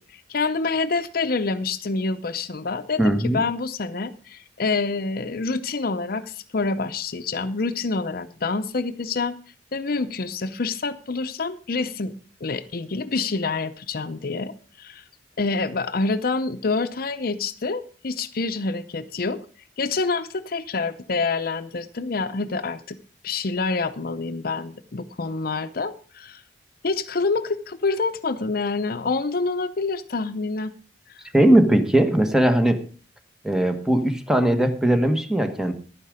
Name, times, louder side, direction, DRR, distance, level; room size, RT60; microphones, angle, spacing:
voice 1, 0.0-9.4 9.7-12.1 12.4-15.0 15.4-19.4 19.8-23.0 23.2-26.4 26.8-30.7, left 3 dB, 55° left, 12 dB, 0.6 m, -27 dB
voice 2, 3.0-3.4 31.3-32.8 33.4-35.7, right 1 dB, 5° right, 7 dB, 1.3 m, -19 dB
12.0 x 9.8 x 4.9 m, 0.40 s
head